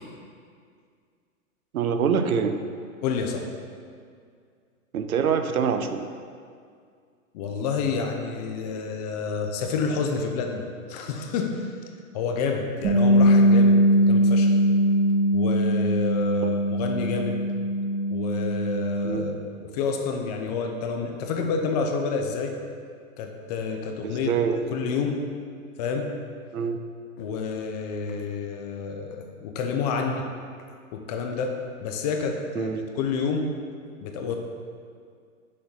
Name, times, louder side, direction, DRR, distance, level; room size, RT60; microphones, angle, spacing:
voice 1, 1.7-2.6 4.9-6.1 16.4-16.5 19.0-19.3 24.0-24.6 26.5-26.8 32.5-32.9, right 6 dB, 90° right, 8 dB, 0.7 m, -25 dB
voice 2, 3.0-3.5 7.3-11.8 12.1-13.8 14.1-14.6 15.3-17.4 18.1-22.6 23.2-24.3 24.7-25.3 25.8-26.2 27.2-30.3 30.9-33.6 34.0-34.4, left 5 dB, 30° left, 4 dB, 0.6 m, -29 dB
Bass guitar, 12.8-19.1, equal, 30° right, 1.3 m, -21 dB
6.6 x 4.4 x 5.5 m, 2.1 s
hypercardioid pair, 140°, 42 cm